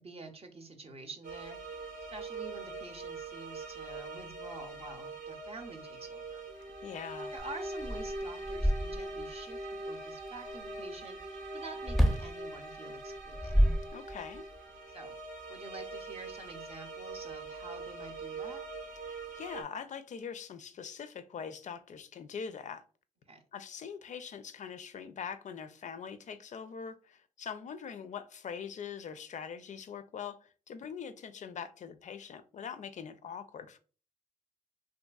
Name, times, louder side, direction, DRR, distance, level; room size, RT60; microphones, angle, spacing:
voice 1, 0.0-1.8 2.1-6.5 7.3-13.6 14.9-15.2 15.5-18.6 23.3-23.4, right 2 dB, 45° right, 0.6 m, -48 dB
sound 1, 1.2-19.6, right 2 dB, 80° right, 0.6 m, -42 dB
voice 2, 6.8-7.3 13.9-14.4 19.1-22.8 23.5-33.8, left 7 dB, 55° left, 0.4 m, -43 dB
sound 2, 7.4-7.5 7.8-9.3 11.9-12.3 13.2-14.4, equal, ahead, 0.5 m, -28 dB
2.6 x 2.6 x 2.3 m
supercardioid pair, 50°, 15 cm